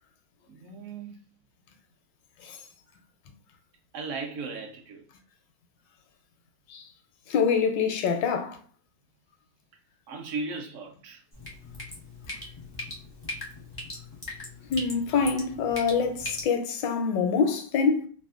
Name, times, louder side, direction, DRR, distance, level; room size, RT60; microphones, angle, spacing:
voice 1, 0.5-1.2 3.9-5.0 10.1-11.2, right 4 dB, 65° right, 0.8 m, -36 dB
voice 2, 7.3-8.6 12.3-12.4 14.7-18.1, left 5 dB, 80° left, 1.2 m, -25 dB
Drip, 11.3-16.4, left 1 dB, 25° left, 0.4 m, -39 dB
3.3 x 2.1 x 2.4 m
omnidirectional pair, 2.0 m